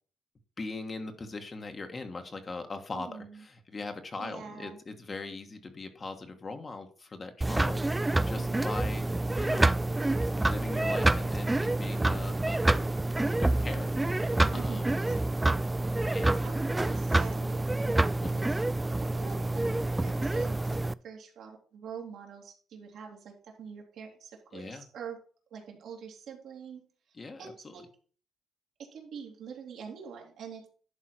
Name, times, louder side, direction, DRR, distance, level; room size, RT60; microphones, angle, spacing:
voice 1, 0.6-9.1 9.3-9.7 10.3-12.8 13.4-15.0 16.1-16.5 18.2-18.5 24.5-24.8 27.1-27.7, left 3 dB, 35° left, 6 dB, 1.5 m, -40 dB
voice 2, 2.9-3.5 4.2-4.8 8.3-8.9 14.5-15.2 16.4-18.0 18.3-18.5 19.2-20.8 21.0-25.2 25.5-26.8 27.4-27.8 28.9-30.7, right 7 dB, 75° right, 0 dB, 2.7 m, -45 dB
sound 1, 7.4-20.9, right 2 dB, 15° right, 0.3 m, -27 dB
11.0 x 3.7 x 6.0 m, 0.42 s
cardioid pair, 90°, 0 cm